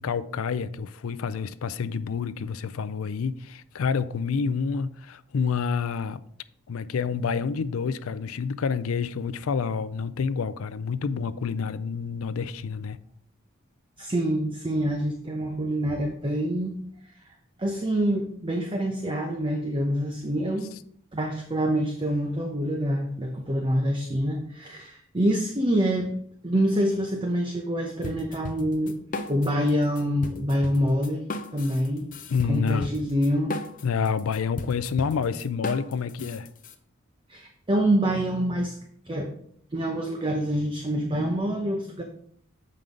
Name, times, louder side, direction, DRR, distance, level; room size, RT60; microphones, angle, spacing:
voice 1, 0.0-6.2 6.7-13.0 32.3-32.9 33.8-36.5, left 5 dB, 85° left, 0.4 m, -28 dB
voice 2, 14.0-16.8 17.6-20.7 21.1-26.1 26.4-28.9 29.3-31.2 31.5-32.1 32.5-33.6 37.3-38.7 39.1-39.3 39.7-42.0, equal, 25° right, 0.7 m, -26 dB
sound 1, 28.0-29.7 30.0-36.7, left 2 dB, 40° left, 0.6 m, -35 dB
7.7 x 5.3 x 3.7 m
head